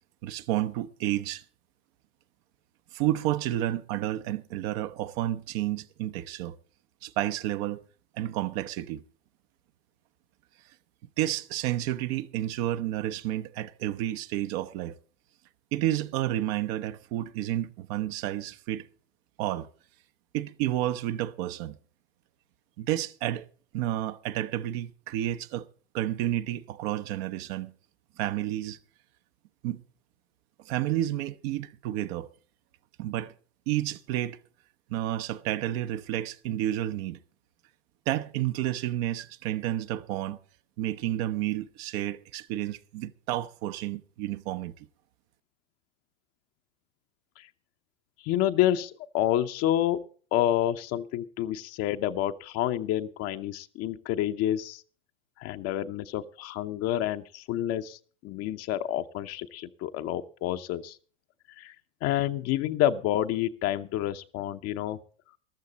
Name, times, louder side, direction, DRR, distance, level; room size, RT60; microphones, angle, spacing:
voice 1, 0.2-1.4 2.9-6.5 7.0-7.8 8.2-9.0 11.2-15.0 15.7-18.9 19.4-19.7 20.3-21.8 22.8-23.5 23.7-25.7 25.9-27.7 28.2-28.8 29.6-29.8 30.7-32.3 33.0-33.3 33.7-34.4 34.9-37.2 38.1-40.4 40.8-44.7, right 13 dB, 50° right, 0.9 m, -30 dB
voice 2, 48.2-50.0 50.3-54.8 55.4-61.0 61.6-61.7 62.0-65.0, left 12 dB, 40° left, 0.8 m, -28 dB
13.5 x 13.5 x 4.1 m
hypercardioid pair, 95°, 39 cm